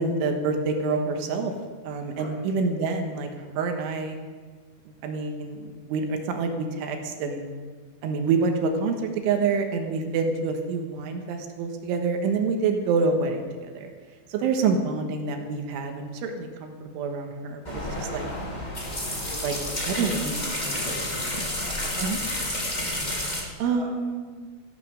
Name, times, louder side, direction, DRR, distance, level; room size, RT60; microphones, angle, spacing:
voice 1, 0.0-1.5 1.9-4.2 5.0-7.5 8.0-13.9 14.3-18.3 19.4-19.5 19.9-20.4 22.0-22.2 23.6-24.5, right 4 dB, 75° right, 4 dB, 3.6 m, -27 dB
sound 1, 17.6-23.4, left 1 dB, 45° left, 0.5 m, -30 dB
voice 2, 19.2-22.1 23.7-23.9, left 2 dB, 70° left, -3 dB, 1.1 m, -41 dB
14.0 x 13.5 x 5.2 m, 1.5 s
omnidirectional pair, 5.8 m